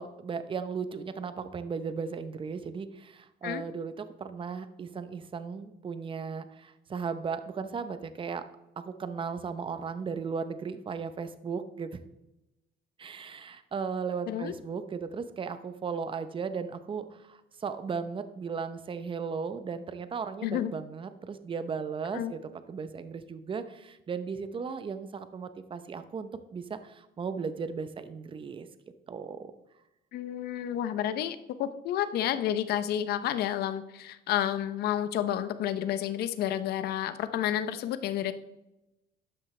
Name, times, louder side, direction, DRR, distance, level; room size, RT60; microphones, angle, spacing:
voice 1, 0.0-8.4 8.8-12.0 13.0-28.7 29.1-29.5, right 5 dB, 30° right, 11 dB, 0.8 m, -36 dB
voice 2, 20.4-20.7 22.1-22.3 30.1-38.3, left 11 dB, 70° left, 12 dB, 0.6 m, -30 dB
12.0 x 7.8 x 3.3 m, 0.93 s
cardioid pair, 110°, 17 cm